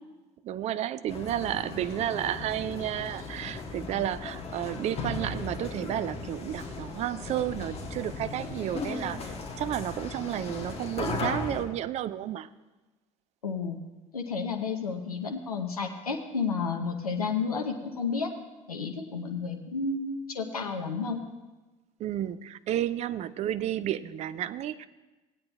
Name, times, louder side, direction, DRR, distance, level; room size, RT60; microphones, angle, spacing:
voice 1, 0.4-12.5 22.0-24.9, right 11 dB, 35° right, 15 dB, 0.5 m, -32 dB
sound 1, 1.1-11.6, left 3 dB, 35° left, 1.6 m, -37 dB
voice 2, 13.4-13.8 14.1-18.3 18.7-21.2, left 5 dB, 80° left, 4 dB, 0.7 m, -31 dB
17.0 x 8.6 x 3.5 m, 1.1 s
figure-of-eight pair, 60°, 19 cm